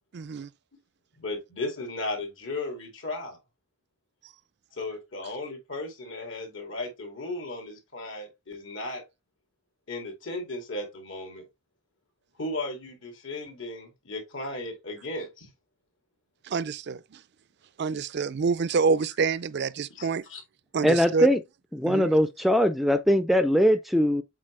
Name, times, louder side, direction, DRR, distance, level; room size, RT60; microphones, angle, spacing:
voice 1, 0.1-0.5 16.5-17.0 17.8-20.2 20.7-21.3 21.8-22.1, right 5 dB, 55° right, 0.4 m, -27 dB
voice 2, 1.2-3.4 4.7-9.0 9.9-11.5 12.4-15.5 19.9-20.4, left 2 dB, 70° left, 2.6 m, -35 dB
voice 3, 20.8-21.4 21.7-24.2, equal, ahead, 0.4 m, -21 dB
7.5 x 4.1 x 3.3 m
head